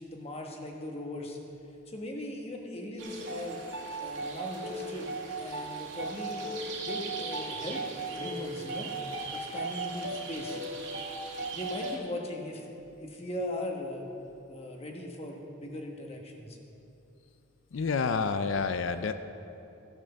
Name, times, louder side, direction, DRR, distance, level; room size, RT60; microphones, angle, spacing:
voice 1, 0.0-1.4 1.9-3.6 4.0-5.1 5.4-6.4 6.8-8.9 9.3-10.6 11.5-12.7 13.0-14.0 14.5-16.6, left 1 dB, 30° left, 1 dB, 1.2 m, -39 dB
sound 1, 3.0-12.0, right 2 dB, 60° right, 1.7 m, -37 dB
voice 2, 17.7-19.1, left 5 dB, 65° left, 10 dB, 0.4 m, -29 dB
14.5 x 6.1 x 6.8 m, 2.9 s
head